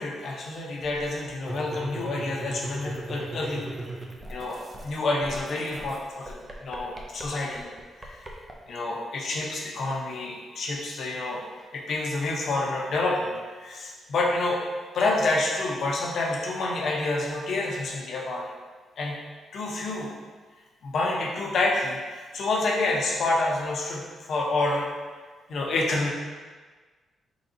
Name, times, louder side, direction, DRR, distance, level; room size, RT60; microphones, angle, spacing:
voice 1, 0.0-3.6 4.3-4.6 4.8-7.7 8.0-8.2 8.7-11.4 11.7-13.3 13.6-14.6 14.9-18.4 19.0-19.2 19.5-20.1 20.8-24.9 25.5-26.1, left 2 dB, 55° left, -2 dB, 0.8 m, -28 dB
sound 1, 0.8-5.0 5.2-8.5, right 2 dB, 20° right, 0.5 m, -38 dB
4.0 x 3.9 x 2.6 m, 1.4 s
cardioid pair, 140°, 0 cm